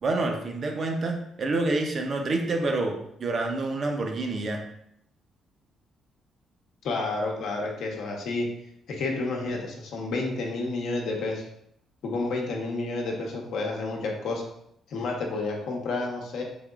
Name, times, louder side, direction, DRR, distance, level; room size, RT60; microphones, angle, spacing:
voice 1, 0.0-4.6, right 2 dB, 45° right, 3 dB, 0.6 m, -28 dB
voice 2, 6.8-8.5 8.9-11.4 12.0-14.4 14.9-16.4, left 3 dB, 75° left, 0 dB, 0.8 m, -30 dB
3.6 x 3.5 x 2.4 m, 0.75 s
cardioid pair, 90°, 0 cm